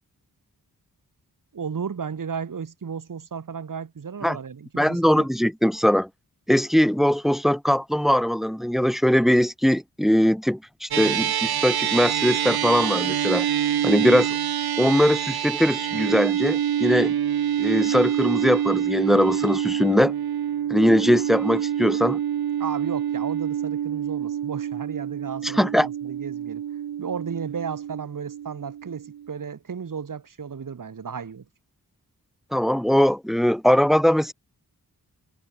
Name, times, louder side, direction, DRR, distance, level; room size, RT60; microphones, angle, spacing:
voice 1, 1.5-5.3 22.6-26.6 27.0-31.4, right 6 dB, 60° right, 2.1 m, -34 dB
voice 2, 4.8-6.1 6.5-13.5 13.8-14.4 14.8-17.1 17.6-20.1 20.7-22.2 25.4-25.9 32.5-34.3, equal, ahead, 0.7 m, -21 dB
sound 1, 10.9-29.5, right 10 dB, 85° right, 0.9 m, -26 dB
wide cardioid pair, 105°, 36 cm